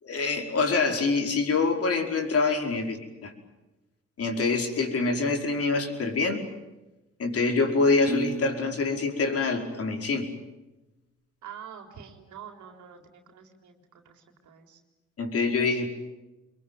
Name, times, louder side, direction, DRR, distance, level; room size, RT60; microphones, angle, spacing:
voice 1, 0.0-3.3 4.2-6.4 7.2-10.3 15.2-15.9, left 3 dB, 50° left, 3 dB, 5.3 m, -25 dB
Piano, 8.1-10.3, right 4 dB, 40° right, 2.8 m, -38 dB
voice 2, 11.4-14.8, right 8 dB, 75° right, 5 dB, 4.1 m, -46 dB
25.5 x 22.5 x 9.2 m, 1.0 s
cardioid pair, 90°, 30 cm